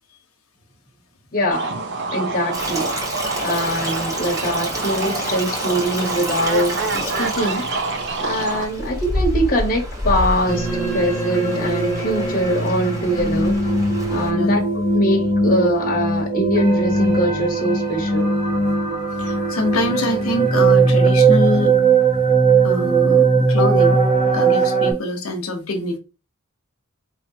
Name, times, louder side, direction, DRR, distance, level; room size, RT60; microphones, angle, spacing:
voice 1, 1.3-1.8 2.1-2.9 3.4-7.9 8.2-10.7 10.9-13.6 14.1-18.3, equal, 40° left, 1.0 m, -23 dB
sound 1, 1.5-8.7, right 3 dB, 60° right, 0.7 m, -27 dB
Stream, 2.5-14.3, equal, 15° right, 1.1 m, -28 dB
sound 2, 10.5-24.9, right 4 dB, 35° right, 1.4 m, -19 dB
voice 2, 14.3-14.6 19.2-21.8 22.6-24.0 24.3-26.0, left 2 dB, 85° left, 1.0 m, -24 dB
4.5 x 2.7 x 2.8 m
head